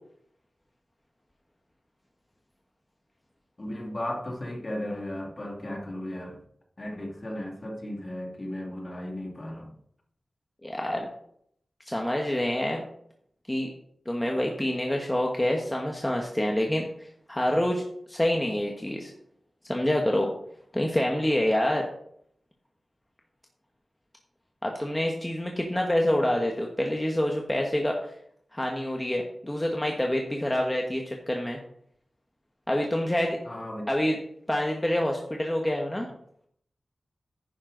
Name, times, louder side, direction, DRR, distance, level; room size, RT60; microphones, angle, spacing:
voice 1, 3.6-6.4 6.8-9.7 33.4-33.9, left 1 dB, 35° left, 1 dB, 2.3 m, -35 dB
voice 2, 10.6-11.1 11.9-12.8 13.5-13.7 14.0-17.8 18.1-19.1 19.7-20.3 20.7-21.9 24.6-28.1 28.5-31.6 32.7-33.4 33.9-34.2 34.5-36.1, left 1 dB, 10° left, 1 dB, 1.4 m, -27 dB
10.5 x 9.9 x 4.0 m, 0.68 s
wide cardioid pair, 115°, 0 cm